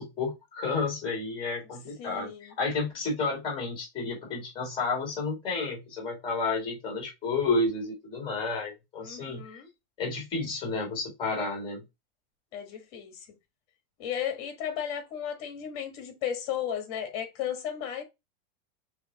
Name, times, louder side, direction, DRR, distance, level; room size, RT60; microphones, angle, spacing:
voice 1, 0.0-9.6 10.0-11.8, left 3 dB, 15° left, 2.1 m, -31 dB
voice 2, 2.0-2.5 9.0-9.7 12.5-13.2 14.0-18.0, left 9 dB, 40° left, 1.3 m, -34 dB
5.0 x 3.0 x 2.7 m
supercardioid pair, 175°, 30 cm